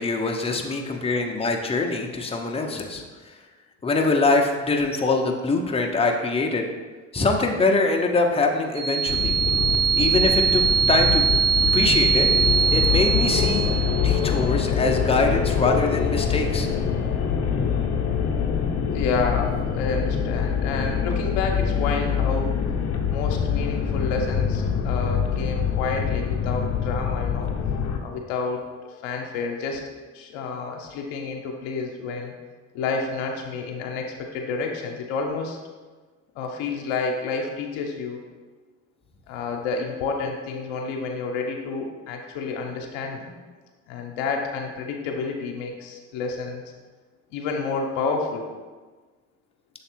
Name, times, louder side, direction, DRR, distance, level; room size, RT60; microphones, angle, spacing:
voice 1, 0.0-3.0 3.8-6.6 7.1-9.3 10.0-11.4 11.7-12.3 12.7-16.7, left 3 dB, 15° left, 1 dB, 0.8 m, -23 dB
sound 1, 8.7-14.4, right 7 dB, 80° right, 1.7 m, -22 dB
sound 2, 9.1-28.0, left 7 dB, 45° left, 0.9 m, -25 dB
voice 2, 18.9-22.6 23.1-27.5 28.0-28.6 29.0-29.8 30.1-32.3 32.7-35.6 36.3-38.2 39.3-43.3 43.9-46.6 47.3-48.5, left 4 dB, 80° left, 2 dB, 0.9 m, -29 dB
6.7 x 3.2 x 4.5 m, 1.3 s
hypercardioid pair, 65°, 36 cm